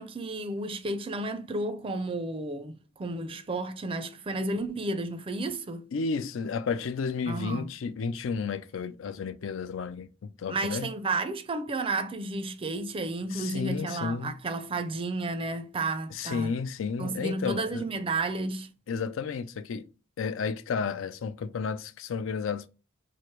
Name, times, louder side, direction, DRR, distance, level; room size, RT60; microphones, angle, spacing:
voice 1, 0.0-5.9 7.3-7.7 10.5-16.5 17.0-18.7, right 2 dB, 30° right, 0.4 m, -32 dB
voice 2, 5.9-10.9 13.3-14.3 16.1-17.8 18.9-19.9 20.2-22.7, left 5 dB, 80° left, 0.4 m, -32 dB
3.2 x 2.5 x 4.4 m
head